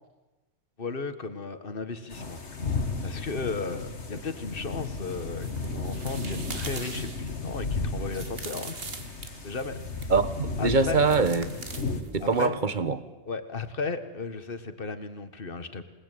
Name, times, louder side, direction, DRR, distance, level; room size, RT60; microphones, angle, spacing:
voice 1, 0.8-2.4 3.0-8.8 9.4-9.8 10.6-11.1 12.2-12.6 13.3-15.8, left 4 dB, 55° left, 10 dB, 1.9 m, -35 dB
sound 1, 2.1-12.0, left 3 dB, 90° left, 2.4 m, -34 dB
sound 2, 5.1-10.2 11.1-12.5, right 3 dB, 60° right, 2.3 m, -42 dB
voice 2, 10.1-11.5 12.1-13.0, right 4 dB, 45° right, 13 dB, 1.6 m, -24 dB
27.5 x 20.0 x 9.2 m, 1.1 s
omnidirectional pair, 1.1 m